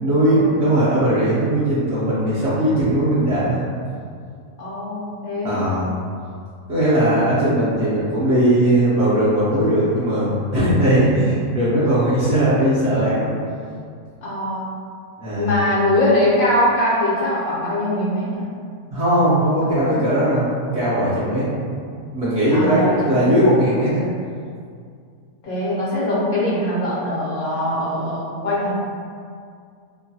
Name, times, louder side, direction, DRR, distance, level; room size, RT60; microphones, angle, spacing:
voice 1, 0.0-3.6 5.4-5.9 6.7-13.3 15.2-15.5 18.9-21.5 21.8-24.0, right 1 dB, 55° right, -11 dB, 0.8 m, -19 dB
voice 2, 4.6-5.7 14.2-14.7 15.3-18.5 19.8-20.0 22.5-23.3 25.4-28.7, left 1 dB, 70° left, -7 dB, 1.1 m, -22 dB
3.0 x 2.1 x 2.7 m, 2.2 s
omnidirectional pair, 1.7 m